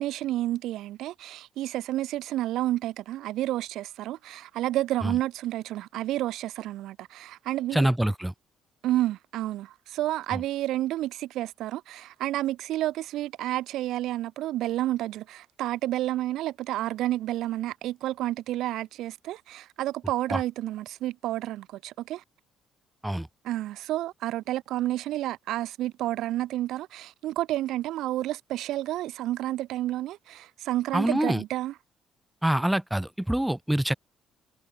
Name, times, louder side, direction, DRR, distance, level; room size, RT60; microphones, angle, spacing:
voice 1, 0.0-7.9 8.8-22.2 23.4-31.8, right 14 dB, 75° right, 3.2 m, -30 dB
voice 2, 7.7-8.3 20.3-20.4 23.0-23.3 30.9-31.4 32.4-33.9, right 1 dB, 5° right, 3.5 m, -25 dB
cardioid pair, 180°, 0 cm